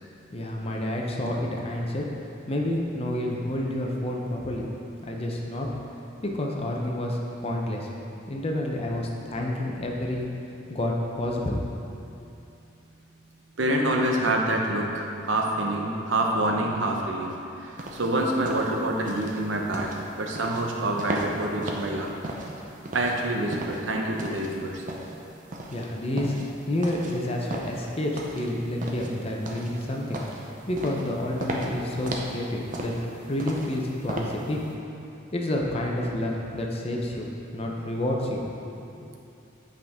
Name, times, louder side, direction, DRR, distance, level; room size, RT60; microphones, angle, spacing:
voice 1, 0.3-2.1 2.5-4.7 5.0-5.7 6.2-7.9 8.3-10.3 10.7-11.6 25.7-26.3 26.7-30.2 30.7-32.9 33.3-34.6 35.3-39.1, left 1 dB, 30° left, -1 dB, 0.7 m, -29 dB
voice 2, 13.6-17.3 18.0-19.9 20.2-22.1 22.9-24.7, right 1 dB, 80° right, 0 dB, 0.8 m, -26 dB
sound 1, 17.8-34.7, right 1 dB, 45° right, 0.7 m, -36 dB
8.6 x 5.1 x 3.6 m, 2.7 s
head